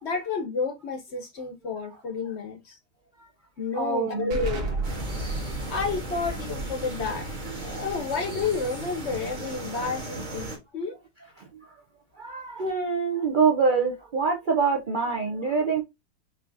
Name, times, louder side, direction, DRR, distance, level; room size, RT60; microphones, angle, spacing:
voice 1, 0.0-2.8 3.6-4.7 5.7-7.3 7.6-10.9, left 4 dB, 55° left, 0.9 m, -30 dB
voice 2, 3.7-4.4 11.4-11.5 12.2-15.8, right 5 dB, 55° right, 0.5 m, -25 dB
Explosion, 4.3-9.7, right 2 dB, 85° right, 1.8 m, -35 dB
sound 1, 4.8-10.6, right 2 dB, 30° right, 1.3 m, -37 dB
5.6 x 2.8 x 2.5 m
omnidirectional pair, 1.7 m